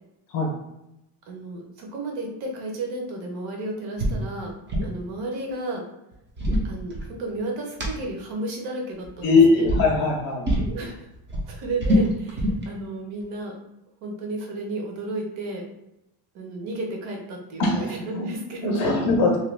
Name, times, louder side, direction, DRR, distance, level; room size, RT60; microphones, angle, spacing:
voice 1, 1.3-4.5 4.8-5.8 6.7-9.6 10.7-11.1 11.5-13.6 14.0-15.7 16.3-19.0, right 2 dB, 65° right, 0 dB, 0.9 m, -32 dB
sound 1, 4.0-4.2 4.5-5.0 6.1-7.4 7.8-7.9 9.0-9.3 9.6-9.9 10.4-10.8 11.1-12.7, equal, 25° right, 0.3 m, -24 dB
voice 2, 9.2-10.5 17.6-17.9 18.6-19.4, left 3 dB, 50° left, 0 dB, 0.5 m, -20 dB
2.7 x 2.2 x 3.2 m, 0.89 s
cardioid pair, 170°, 49 cm